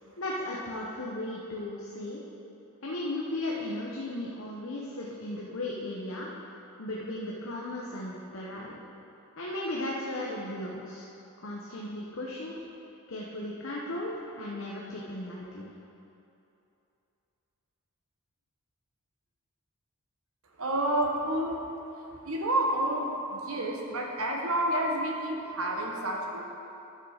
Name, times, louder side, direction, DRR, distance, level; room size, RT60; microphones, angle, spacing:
voice 1, 0.2-2.2 2.8-6.3 6.8-8.8 9.4-11.1 11.4-12.6 13.1-15.7, left 1 dB, 65° left, -4 dB, 1.0 m, -36 dB
voice 2, 20.6-21.6 22.2-26.4, right 1 dB, 70° right, 0 dB, 1.3 m, -29 dB
11.5 x 6.3 x 5.0 m, 2.8 s
head